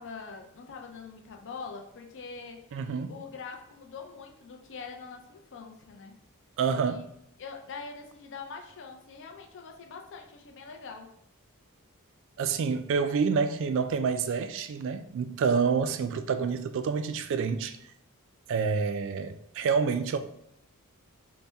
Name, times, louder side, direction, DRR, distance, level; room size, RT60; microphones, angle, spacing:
voice 1, 0.0-2.8 3.1-6.2 6.9-7.0 7.4-11.1, left 5 dB, 55° left, 0.5 m, -43 dB
voice 2, 2.7-3.1 6.6-7.1 12.4-17.8 18.5-20.2, right 5 dB, 60° right, 0.3 m, -28 dB
4.1 x 2.1 x 3.4 m
head